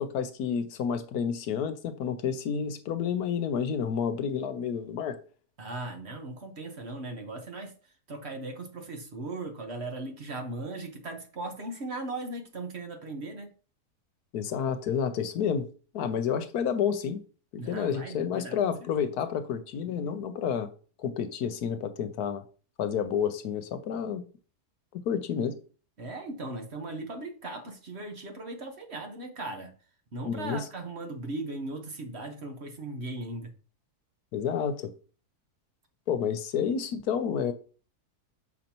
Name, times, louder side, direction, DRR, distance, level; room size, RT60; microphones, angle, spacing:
voice 1, 0.0-5.2 14.3-15.7 15.9-17.2 17.5-20.7 21.0-22.4 22.8-24.2 24.9-25.6 30.2-30.6 34.3-34.9 36.1-37.5, left 7 dB, 75° left, 1.2 m, -30 dB
voice 2, 5.6-7.8 8.1-13.5 17.6-19.2 26.0-29.7 30.1-33.5, right 2 dB, 45° right, 1.3 m, -38 dB
6.6 x 5.3 x 2.9 m
omnidirectional pair, 1.7 m